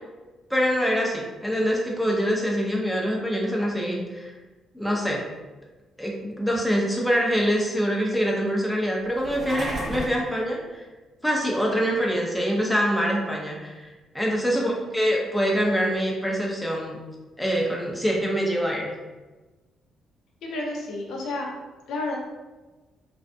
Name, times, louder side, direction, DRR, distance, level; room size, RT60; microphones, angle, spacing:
voice 1, 0.5-4.3 4.7-5.3 6.0-10.9 11.2-17.0 17.4-18.9, equal, 5° left, -2 dB, 0.6 m, -25 dB
sound 1, 9.1-10.2, equal, 50° right, 0.9 m, -32 dB
voice 2, 14.4-14.7 20.5-21.5 21.9-22.2, left 2 dB, 80° left, -2 dB, 0.5 m, -31 dB
2.5 x 2.4 x 2.2 m, 1.2 s
cardioid pair, 90°, 0 cm